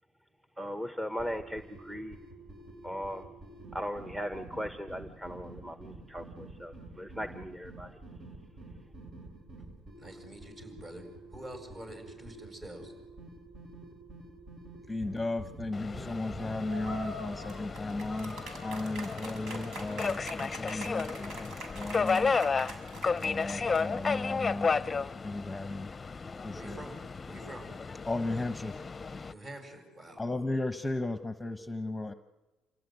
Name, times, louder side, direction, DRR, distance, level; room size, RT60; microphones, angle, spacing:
voice 1, 0.6-2.2 2.8-3.3 3.7-8.0, equal, 10° right, 7 dB, 1.3 m, -38 dB
sound 1, 1.1-17.0, right 2 dB, 50° right, 5.7 m, -49 dB
voice 2, 10.0-12.9 26.5-27.0 27.3-27.7 29.3-30.2, right 1 dB, 35° right, 5 dB, 7.9 m, -46 dB
voice 3, 14.9-22.5 23.2-24.7 25.2-25.9 26.4-26.8 28.0-28.7 30.2-32.1, left 2 dB, 10° left, 9 dB, 1.1 m, -35 dB
Subway metro underground, 15.7-29.3, left 4 dB, 25° left, 0.7 m, -33 dB
sound 2, 16.6-24.0, right 2 dB, 70° right, 6.0 m, -44 dB
27.5 x 17.0 x 9.5 m, 1.1 s
supercardioid pair, 80°, 0 cm